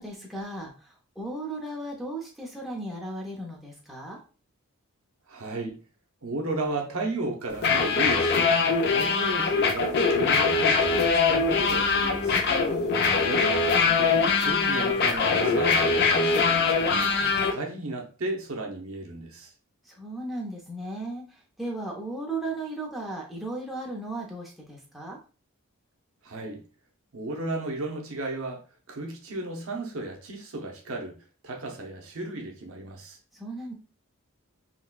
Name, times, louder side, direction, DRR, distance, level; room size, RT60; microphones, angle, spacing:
voice 1, 0.0-4.2 12.6-13.7 19.8-25.2 33.3-33.7, right 2 dB, ahead, 0.6 m, -36 dB
voice 2, 5.3-5.8 6.2-8.5 8.9-12.4 13.2-13.5 13.8-17.1 17.5-19.5 26.2-26.6 27.1-31.2 31.4-33.2, right 2 dB, 65° right, 0.7 m, -34 dB
sound 1, 7.5-17.5, left 4 dB, 50° left, 0.4 m, -23 dB
3.9 x 2.2 x 2.3 m
head